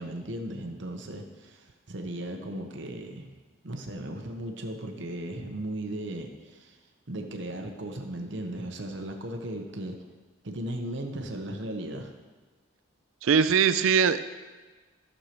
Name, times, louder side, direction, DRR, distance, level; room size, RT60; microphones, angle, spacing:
voice 1, 0.0-3.3 3.6-6.8 7.1-10.0 10.4-12.1, right 1 dB, 60° right, 4 dB, 0.9 m, -36 dB
voice 2, 13.2-14.2, right 6 dB, 85° right, 12 dB, 0.4 m, -21 dB
14.0 x 6.4 x 3.0 m, 1.3 s
head